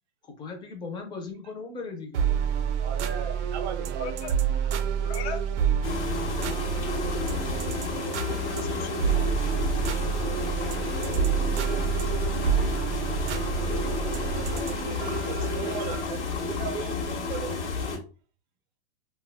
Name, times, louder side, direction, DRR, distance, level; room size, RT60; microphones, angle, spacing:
voice 1, 0.2-2.3, left 4 dB, 15° left, 0.4 m, -38 dB
sound 1, 2.1-16.0, right 8 dB, 90° right, 0.5 m, -28 dB
voice 2, 2.8-4.2 14.2-17.7, right 7 dB, 40° right, 0.5 m, -38 dB
voice 3, 4.0-4.3 4.6-5.4 8.2-8.5 8.7-8.9 14.6-15.4, left 8 dB, 65° left, 0.5 m, -40 dB
sound 2, 5.8-18.0, left 4 dB, 85° left, 1.0 m, -31 dB
2.3 x 2.2 x 3.2 m
hypercardioid pair, 130°, 34 cm